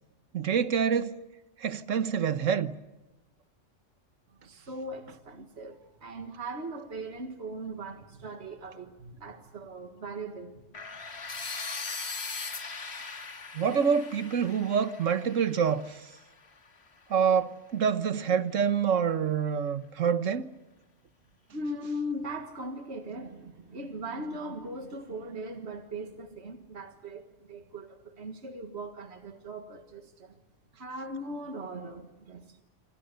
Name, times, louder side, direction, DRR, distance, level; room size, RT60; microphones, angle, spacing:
voice 1, 0.3-1.2 1.6-2.7 13.5-15.9 17.1-20.5, right 7 dB, 85° right, 1.5 m, -26 dB
voice 2, 4.3-10.8 21.5-27.2 27.5-30.4 30.7-32.6, right 1 dB, 60° right, 2.1 m, -39 dB
sound 1, 10.7-16.7, left 4 dB, 60° left, 2.1 m, -40 dB
28.5 x 26.0 x 6.8 m
omnidirectional pair, 1.3 m